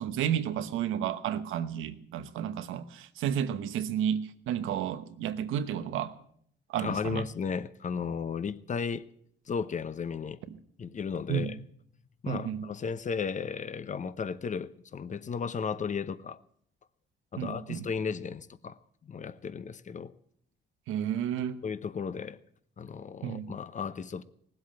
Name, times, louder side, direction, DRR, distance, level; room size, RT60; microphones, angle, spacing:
voice 1, 0.0-6.1 6.7-7.2 11.3-11.5 12.3-12.7 17.4-17.9 20.9-21.6 23.2-23.5, right 9 dB, 90° right, 1.1 m, -32 dB
voice 2, 6.8-9.1 9.5-10.4 10.8-11.6 12.2-16.4 17.3-18.8 19.0-20.1 21.6-22.4 22.8-24.2, left 6 dB, 40° left, 0.8 m, -34 dB
18.5 x 8.1 x 8.8 m
cardioid pair, 90°, 20 cm